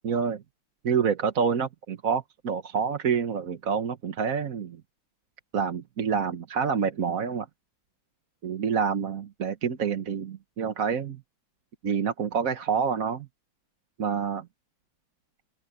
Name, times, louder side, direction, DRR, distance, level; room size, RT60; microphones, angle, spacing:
voice 1, 0.0-0.4 0.8-4.8 5.5-7.5 8.4-11.2 11.8-13.3 14.0-14.5, right 6 dB, 50° right, 1.4 m, -27 dB
omnidirectional pair, 2.2 m